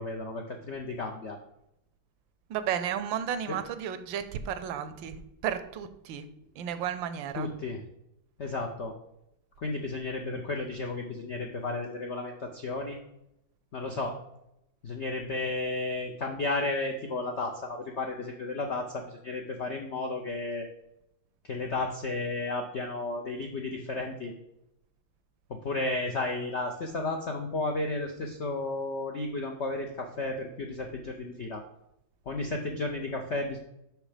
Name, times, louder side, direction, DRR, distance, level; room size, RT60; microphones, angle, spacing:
voice 1, 0.0-1.4 3.5-3.6 7.4-7.8 8.4-8.9 9.6-13.0 13.7-14.2 14.8-20.7 21.5-24.3 25.5-31.6 32.3-33.6, left 2 dB, 70° left, 2 dB, 0.6 m, -33 dB
voice 2, 2.5-6.3 6.6-7.5, right 9 dB, 75° right, 12 dB, 1.3 m, -33 dB
6.4 x 5.8 x 5.0 m, 0.82 s
omnidirectional pair, 2.2 m